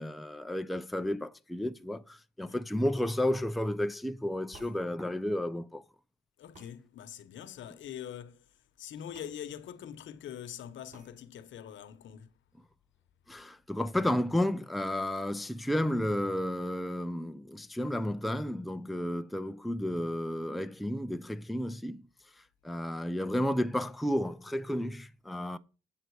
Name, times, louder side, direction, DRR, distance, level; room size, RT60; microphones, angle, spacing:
voice 1, 0.0-5.8 13.3-22.1 22.6-25.6, left 1 dB, ahead, 0.5 m, -32 dB
sound 1, 4.5-4.8 6.5-6.7 9.1-9.4 9.7-9.8 10.9-11.1, right 2 dB, 40° right, 4.9 m, -54 dB
voice 2, 6.4-8.4 8.8-12.3, left 9 dB, 70° left, 1.0 m, -44 dB
7.9 x 7.5 x 4.8 m
cardioid pair, 90°, 20 cm